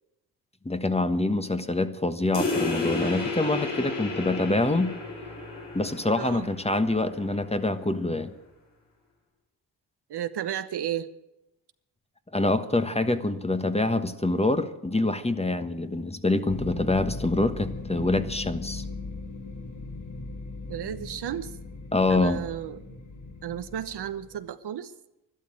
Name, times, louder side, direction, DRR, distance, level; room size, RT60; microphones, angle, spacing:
voice 1, 0.6-4.9 5.7-8.3 12.3-18.8 21.9-22.4, left 2 dB, 15° left, 9 dB, 1.3 m, -25 dB
sound 1, 2.3-7.4, left 3 dB, 80° left, 7.5 m, -32 dB
voice 2, 6.2-6.5 10.1-11.1 20.7-21.5 22.1-22.8 23.4-24.9, right 10 dB, 65° right, 11 dB, 1.0 m, -33 dB
sound 2, 16.5-24.4, left 3 dB, 40° left, 2.0 m, -38 dB
12.0 x 12.0 x 8.8 m, 0.92 s
supercardioid pair, 50°, 43 cm